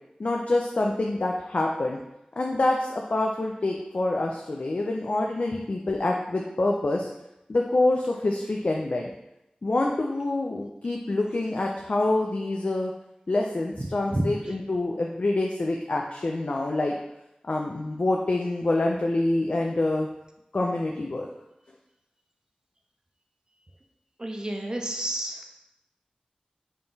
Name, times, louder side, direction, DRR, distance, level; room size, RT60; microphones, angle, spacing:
voice 1, 0.2-2.0 2.4-7.1 7.5-9.0 9.6-12.9 13.3-16.9 17.4-20.1 20.5-21.3, left 2 dB, 60° left, 0 dB, 0.3 m, -26 dB
voice 2, 24.2-25.5, right 1 dB, 30° right, 2 dB, 0.5 m, -30 dB
3.7 x 2.3 x 3.9 m, 0.89 s
wide cardioid pair, 60°, 3 cm